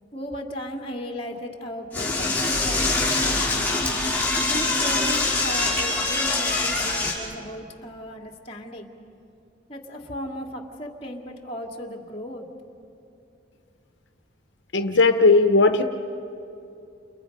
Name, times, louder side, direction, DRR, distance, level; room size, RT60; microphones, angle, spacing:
voice 1, 0.1-3.4 4.5-8.9 9.7-12.5, equal, 30° left, 1 dB, 2.2 m, -36 dB
Door / Toilet flush, 1.9-7.1, left 2 dB, 10° left, 5.2 m, -24 dB
voice 2, 14.7-15.8, left 3 dB, 80° left, 7 dB, 0.9 m, -17 dB
29.5 x 29.5 x 5.4 m, 2.7 s
head